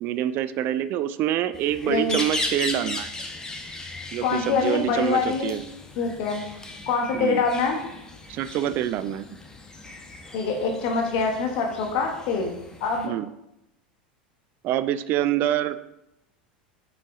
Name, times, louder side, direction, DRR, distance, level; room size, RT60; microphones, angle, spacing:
voice 1, 0.0-3.1 4.1-5.6 7.1-7.4 8.3-9.3 13.0-13.3 14.6-15.9, right 11 dB, 40° right, 14 dB, 0.3 m, -26 dB
sound 1, 1.5-13.1, left 2 dB, 15° left, 0.9 m, -37 dB
voice 2, 1.8-2.2 4.2-5.5 6.0-6.4 6.9-7.8 10.3-13.1, left 4 dB, 55° left, 2 dB, 1.0 m, -25 dB
5.9 x 4.6 x 3.8 m, 0.84 s
figure-of-eight pair, 80°, 5 cm